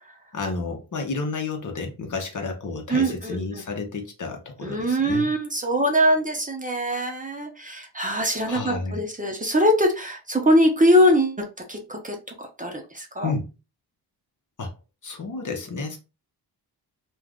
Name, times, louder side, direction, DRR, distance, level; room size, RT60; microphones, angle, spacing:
voice 1, 0.3-5.3 8.5-9.0 13.2-13.5 14.6-14.7 15.0-16.0, left 4 dB, 50° left, 0.9 m, -31 dB
voice 2, 2.9-3.6 4.6-13.3, equal, 20° right, 0.8 m, -22 dB
2.5 x 2.5 x 3.4 m
cardioid pair, 70°, 40 cm